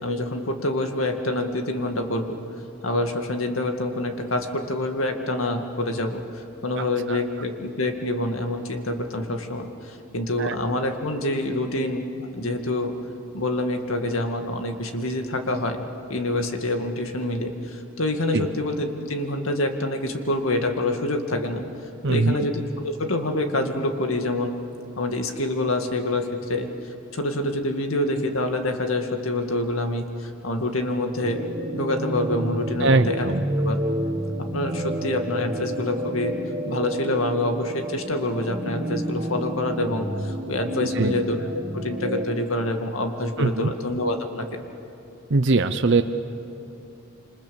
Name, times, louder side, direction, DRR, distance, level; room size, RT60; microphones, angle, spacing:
voice 1, 0.0-2.4 2.8-12.9 13.3-21.6 22.1-24.5 25.0-26.7 27.1-31.4 31.7-33.3 33.6-33.8 34.5-36.4 36.7-41.5 41.7-44.6, left 1 dB, 80° left, 5 dB, 2.1 m, -26 dB
voice 2, 22.0-22.5 32.8-33.4 40.8-41.1 43.4-43.7 45.3-46.0, right 3 dB, 60° right, 7 dB, 0.8 m, -21 dB
sound 1, 31.2-42.3, right 1 dB, 25° right, 1.9 m, -30 dB
27.0 x 26.0 x 7.1 m, 2.8 s
head